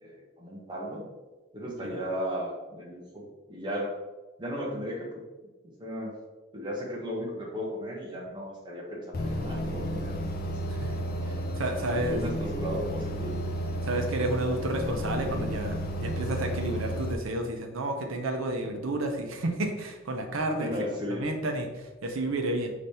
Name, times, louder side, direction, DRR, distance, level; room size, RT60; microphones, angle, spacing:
voice 1, 0.0-1.0 1.5-3.9 4.4-5.2 5.8-6.1 6.5-10.2 12.1-13.4 20.6-21.3, equal, 20° right, -2 dB, 0.9 m, -35 dB
sound 1, 9.1-17.1, equal, 45° left, 0.5 m, -32 dB
voice 2, 11.6-12.2 13.8-20.7 21.1-22.7, right 2 dB, 75° right, 4 dB, 0.7 m, -31 dB
5.1 x 3.3 x 2.8 m, 1.1 s
head